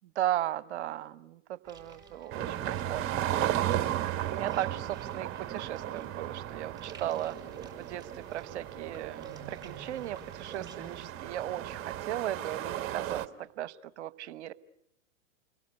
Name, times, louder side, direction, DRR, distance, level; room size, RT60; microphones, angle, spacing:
voice 1, 0.2-7.4 7.7-13.3 13.6-14.5, right 12 dB, 60° right, 17 dB, 1.1 m, -37 dB
sound 1, 1.6-10.9, right 6 dB, 10° right, 5.5 m, -50 dB
sound 2, 2.3-13.3, right 12 dB, 35° right, 1.4 m, -35 dB
29.0 x 22.5 x 7.9 m, 0.78 s
hypercardioid pair, 110°, 39 cm